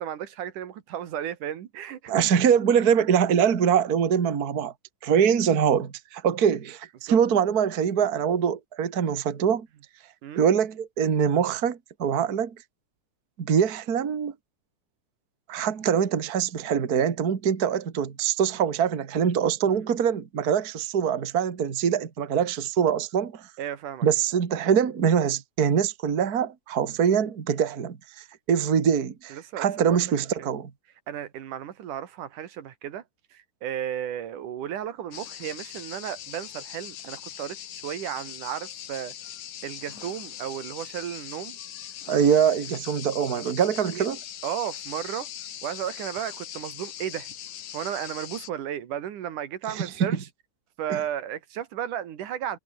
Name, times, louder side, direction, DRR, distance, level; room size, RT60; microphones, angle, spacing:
voice 1, 0.0-2.2 7.1-7.2 10.2-10.4 19.7-19.8 23.6-24.1 29.3-30.0 31.1-33.0 33.3-37.6 37.8-39.1 39.6-41.6 43.9-44.1 44.4-45.3 45.6-47.3 47.7-50.2 50.8-52.6, right 10 dB, 80° right, 3.3 m, -34 dB
voice 2, 2.1-4.7 5.0-9.7 10.4-12.6 13.4-14.3 15.5-23.5 24.0-30.7 42.1-44.2 49.7-50.2 50.9-51.0, right 7 dB, 35° right, 1.9 m, -24 dB
sound 1, 35.1-48.5, left 11 dB, 70° left, 2.9 m, -41 dB
omnidirectional pair, 3.6 m